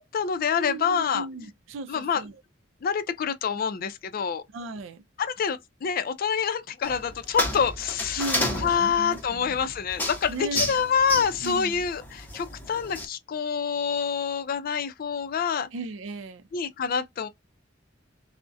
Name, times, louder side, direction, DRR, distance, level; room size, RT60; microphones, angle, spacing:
voice 1, 0.0-1.3 1.9-2.2 2.8-4.4 5.2-8.3 8.6-15.7 16.5-17.3, left 6 dB, 50° left, 0.4 m, -27 dB
voice 2, 0.6-2.3 4.5-5.0 8.2-9.7 10.3-10.6 11.4-11.8 15.7-16.5, right 3 dB, 85° right, 0.4 m, -36 dB
sound 1, 6.8-13.1, left 1 dB, 10° left, 0.6 m, -32 dB
2.3 x 2.1 x 2.5 m
head